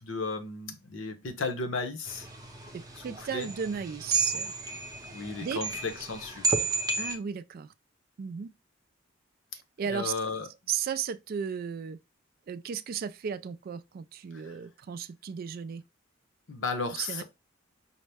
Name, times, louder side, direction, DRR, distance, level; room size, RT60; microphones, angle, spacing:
voice 1, 0.0-2.3 3.0-3.5 5.0-6.7 9.9-10.5 14.4-14.5 16.5-17.2, left 3 dB, 70° left, 0.8 m, -34 dB
sound 1, 2.1-7.1, right 4 dB, 20° right, 0.7 m, -32 dB
voice 2, 2.7-4.5 5.4-5.6 7.0-7.7 8.2-8.5 9.8-10.1 10.7-12.0 12.5-15.8 17.0-17.2, right 7 dB, 50° right, 0.3 m, -35 dB
5.5 x 2.1 x 3.3 m
head